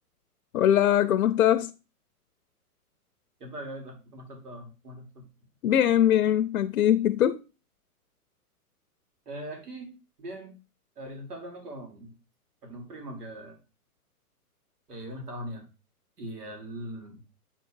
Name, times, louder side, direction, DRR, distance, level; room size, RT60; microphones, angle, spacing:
voice 1, 0.5-1.7 5.6-7.4, left 11 dB, 65° left, 0.6 m, -22 dB
voice 2, 3.4-5.2 9.3-9.9 10.2-10.5 11.0-12.1 12.6-13.6 14.9-15.7 16.2-17.2, right 1 dB, 85° right, 3.5 m, -40 dB
8.1 x 3.8 x 4.6 m
hypercardioid pair, 150°, 46 cm